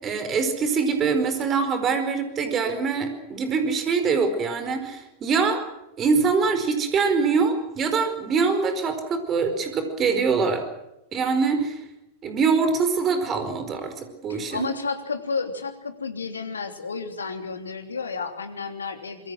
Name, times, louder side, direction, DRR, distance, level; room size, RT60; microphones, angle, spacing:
voice 1, 0.0-5.6 6.0-10.6 11.1-11.8 12.2-13.9 14.2-14.7, right 5 dB, 25° right, 8 dB, 4.8 m, -23 dB
voice 2, 14.3-19.3, left 4 dB, 75° left, 7 dB, 3.3 m, -31 dB
26.0 x 23.5 x 6.4 m, 0.87 s
figure-of-eight pair, 90°, 0 cm